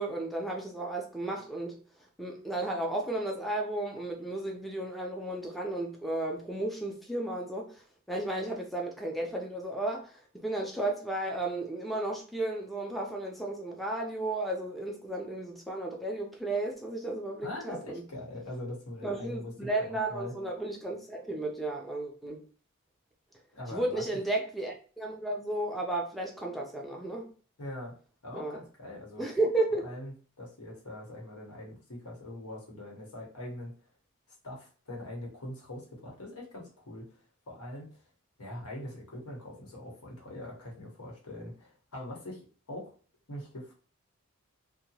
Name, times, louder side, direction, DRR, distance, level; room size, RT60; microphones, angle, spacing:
voice 1, 0.0-1.8 2.2-18.0 19.0-22.4 23.7-27.3 28.3-28.6 29.2-29.9, right 2 dB, ahead, 0.4 m, -33 dB
voice 2, 17.4-20.3 23.5-24.0 27.6-27.9 28.2-29.2 29.8-33.7 34.4-37.0 37.5-38.0 38.4-42.4 42.7-42.9 43.3-43.7, left 1 dB, 85° left, 1.2 m, -42 dB
2.8 x 2.2 x 2.7 m
head